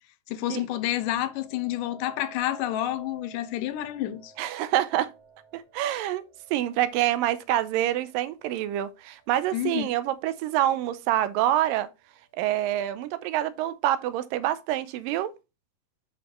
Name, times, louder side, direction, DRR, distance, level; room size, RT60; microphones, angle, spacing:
voice 1, 0.3-4.3 9.5-10.0, left 13 dB, 80° left, 2.2 m, -29 dB
sound 1, 1.1-10.2 10.8-11.2, right 5 dB, 45° left, 4.5 m, -54 dB
voice 2, 4.4-5.1 5.5-11.9 12.3-15.3, right 13 dB, 85° right, 2.3 m, -26 dB
8.1 x 5.4 x 3.1 m
omnidirectional pair, 4.0 m